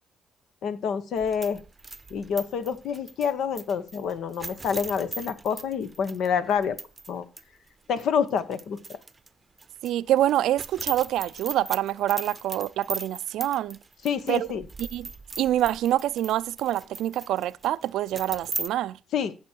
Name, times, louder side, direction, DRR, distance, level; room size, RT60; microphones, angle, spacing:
voice 1, 0.6-1.6 2.1-6.8 7.1-7.2 7.9-8.8 14.0-14.6 19.1-19.3, left 7 dB, 75° left, 1.2 m, -27 dB
sound 1, 1.2-7.1 7.4-7.5 8.0-9.3 9.6-18.7, right 3 dB, 25° right, 0.7 m, -39 dB
voice 2, 9.8-13.8 14.3-14.5 14.8-15.1 15.4-19.0, right 13 dB, 85° right, 0.4 m, -26 dB
14.5 x 6.2 x 4.5 m
cardioid pair, 90°, 0 cm